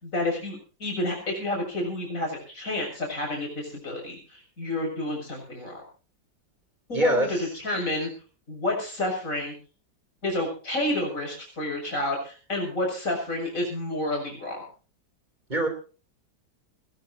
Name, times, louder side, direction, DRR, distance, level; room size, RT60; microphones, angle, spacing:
voice 1, 0.0-5.8 6.9-8.1 8.5-9.5 10.2-14.7, left 1 dB, 40° left, 1 dB, 7.5 m, -30 dB
voice 2, 6.9-7.5 15.5-15.7, right 1 dB, 25° right, 7 dB, 3.4 m, -25 dB
21.0 x 19.0 x 2.8 m, 0.36 s
omnidirectional pair, 2.1 m